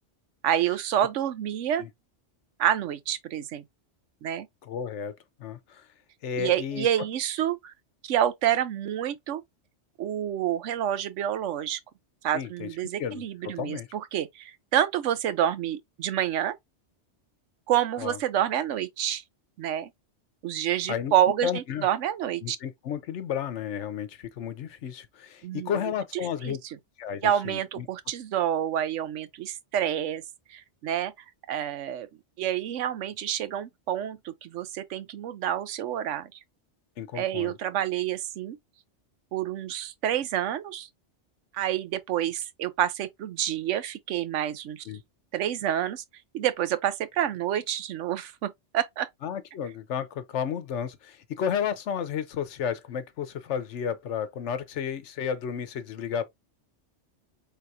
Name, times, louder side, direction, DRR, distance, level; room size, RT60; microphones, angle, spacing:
voice 1, 0.4-1.9 2.6-3.6 4.2-4.5 6.4-7.7 8.0-9.4 10.0-11.8 12.2-16.5 17.7-19.2 19.6-19.9 20.4-22.6 25.4-25.7 26.1-26.6 27.2-30.2 30.5-31.1 31.5-32.1 32.4-36.4 37.1-38.6 39.3-40.9 41.5-44.9 45.3-46.0 46.3-49.1, right 11 dB, 90° right, 1.0 m, -28 dB
voice 2, 4.6-5.9 6.2-6.9 12.3-12.7 13.0-13.9 18.0-18.2 20.9-21.1 21.4-21.9 22.4-26.6 27.0-27.9 37.0-37.6 44.9-45.0 49.2-56.2, left 8 dB, 75° left, 1.1 m, -32 dB
4.7 x 3.4 x 2.7 m
omnidirectional pair, 1.2 m